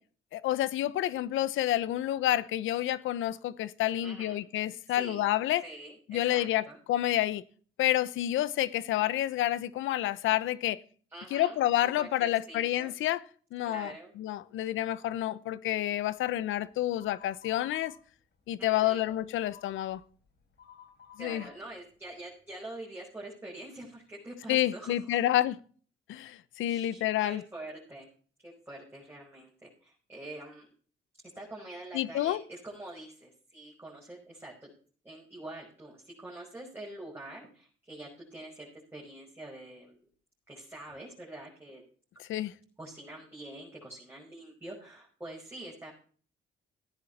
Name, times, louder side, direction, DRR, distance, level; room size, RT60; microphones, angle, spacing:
voice 1, 0.3-5.6 6.1-7.4 7.8-10.8 11.3-13.2 13.5-13.9 14.2-17.9 18.5-20.0 21.2-21.4 24.5-25.6 26.1-27.4 31.9-32.4 42.2-42.5, left 13 dB, 85° left, 0.9 m, -29 dB
voice 2, 4.0-4.4 4.9-5.3 5.6-6.8 11.1-13.0 13.6-14.1 18.6-19.1 21.2-25.2 26.7-28.1 28.4-30.7 31.4-34.7 35.0-40.0 40.5-41.8 42.8-45.9, right 1 dB, 10° right, 5.7 m, -45 dB
sound 1, 17.0-17.9 18.5-21.5, left 9 dB, 60° left, 4.4 m, -53 dB
14.5 x 10.5 x 4.2 m
cardioid pair, 90°, 20 cm